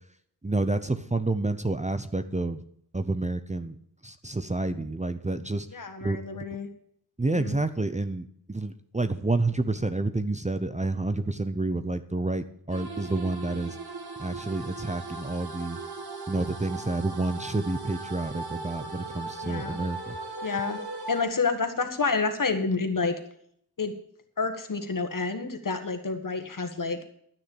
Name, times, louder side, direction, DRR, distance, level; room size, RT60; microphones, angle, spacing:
voice 1, 0.4-2.6 2.9-3.8 4.0-5.7 6.0-6.4 7.2-13.8 14.2-15.8 16.3-20.2, right 2 dB, 20° right, 9 dB, 0.7 m, -29 dB
voice 2, 5.7-6.7 7.3-7.6 19.4-19.8 20.4-20.8 21.1-23.1 23.8-23.9 24.4-27.0, left 4 dB, 55° left, 7 dB, 1.7 m, -29 dB
sound 1, 12.7-21.2, right 3 dB, 70° right, 1.8 m, -38 dB
12.0 x 6.6 x 8.4 m, 0.67 s
wide cardioid pair, 65°, 40 cm